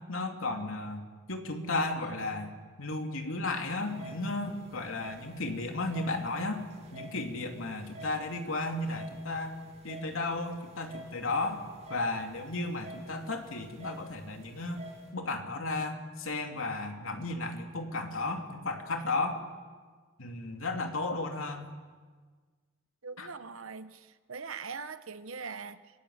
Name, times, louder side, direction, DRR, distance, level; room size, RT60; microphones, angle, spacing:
voice 1, 0.1-6.6 6.9-9.6 9.8-11.6 11.9-14.8 15.1-19.4 20.2-21.7 23.2-23.3, left 2 dB, 75° left, 3 dB, 3.0 m, -34 dB
sound 1, 3.9-15.1, right 1 dB, 30° right, 7.5 m, -51 dB
voice 2, 23.0-25.8, right 5 dB, 80° right, 12 dB, 1.1 m, -41 dB
30.0 x 21.0 x 8.1 m, 1.5 s
head